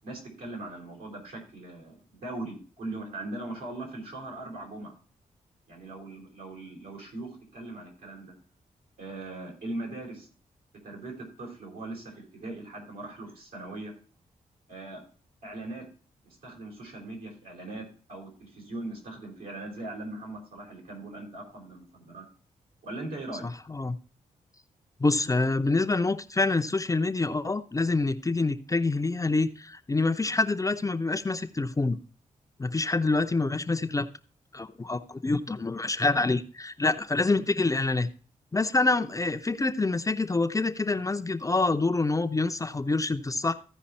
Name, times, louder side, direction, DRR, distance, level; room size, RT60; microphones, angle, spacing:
voice 1, 0.0-4.9 5.7-8.3 9.0-10.3 10.8-13.9 14.7-15.0 15.4-15.8 16.4-22.2 22.8-23.5, right 2 dB, 85° right, -1 dB, 4.5 m, -40 dB
voice 2, 25.0-32.0 32.6-34.1 34.5-38.1 38.5-43.5, left 3 dB, 20° left, 8 dB, 0.7 m, -26 dB
14.5 x 5.0 x 4.3 m, 0.39 s
cardioid pair, 65°, 15 cm